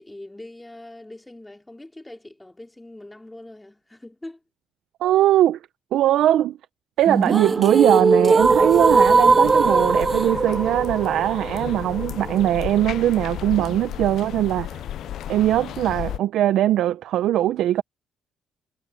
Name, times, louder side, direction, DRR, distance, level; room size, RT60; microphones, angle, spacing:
voice 1, 0.0-4.4, left 1 dB, 10° left, 3.7 m, -42 dB
voice 2, 5.0-5.6 5.9-6.6 7.0-14.8 15.3-17.8, right 12 dB, 75° right, 0.6 m, -20 dB
sound 1, 7.1-13.1, right 4 dB, 30° right, 0.4 m, -19 dB
sound 2, 8.4-16.2, left 11 dB, 70° left, 0.5 m, -34 dB
cardioid pair, 80°, 0 cm